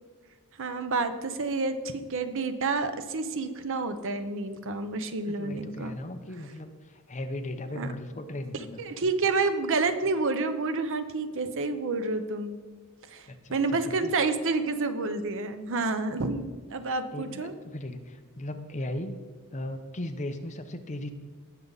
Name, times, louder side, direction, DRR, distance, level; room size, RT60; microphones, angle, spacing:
voice 1, 0.6-6.0 7.7-7.9 8.8-12.6 13.1-17.5, right 3 dB, 60° right, 10 dB, 0.8 m, -29 dB
voice 2, 5.3-8.8 13.3-14.1 17.1-19.2 19.5-21.1, left 1 dB, 35° left, 7 dB, 0.9 m, -37 dB
18.5 x 6.8 x 4.0 m, 1.5 s
head